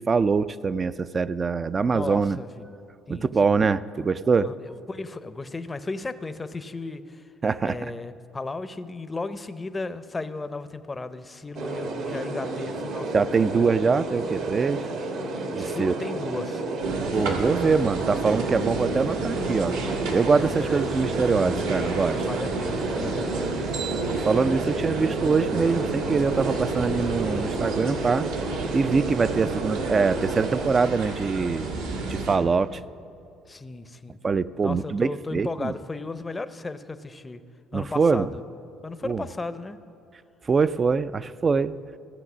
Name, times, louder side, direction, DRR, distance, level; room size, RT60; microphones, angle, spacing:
voice 1, 0.0-2.4 3.1-4.5 7.4-7.8 13.1-14.8 15.5-15.9 17.1-19.7 20.1-22.2 24.1-28.3 28.7-31.8 32.0-32.8 34.2-35.7 37.7-38.3 39.0-39.2 40.5-41.7, right 5 dB, 35° right, 16 dB, 0.4 m, -23 dB
voice 2, 1.9-2.7 3.1-3.5 4.4-7.2 7.6-13.2 13.5-13.8 15.6-18.0 20.3-20.8 22.1-23.6 33.5-34.2 34.6-37.4 37.7-38.4 38.8-39.8, left 3 dB, 25° left, 12 dB, 0.6 m, -35 dB
sound 1, 11.5-30.7, right 2 dB, 70° right, 1.5 m, -32 dB
sound 2, 16.8-32.4, right 3 dB, 85° right, 1.7 m, -31 dB
15.0 x 7.7 x 6.1 m, 2.6 s
supercardioid pair, 65°, 0 cm